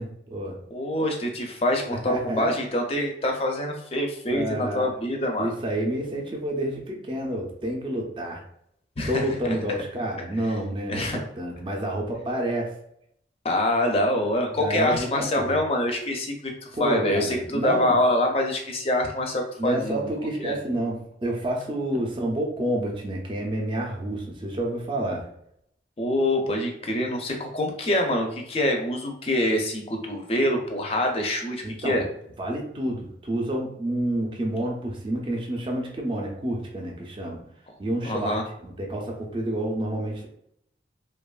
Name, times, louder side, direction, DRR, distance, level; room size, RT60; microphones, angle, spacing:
voice 1, 0.0-0.6 1.9-2.5 4.3-5.0 5.4-8.4 9.1-12.7 14.6-15.6 16.7-17.9 19.6-25.3 31.6-32.1 32.4-37.4 37.8-40.3, right 1 dB, 30° right, 0 dB, 0.4 m, -29 dB
voice 2, 0.7-5.5 9.0-9.2 10.9-11.2 13.4-20.1 20.4-20.6 26.0-32.0 38.0-38.4, left 1 dB, 35° left, 2 dB, 0.4 m, -25 dB
2.8 x 2.2 x 2.3 m, 0.74 s
head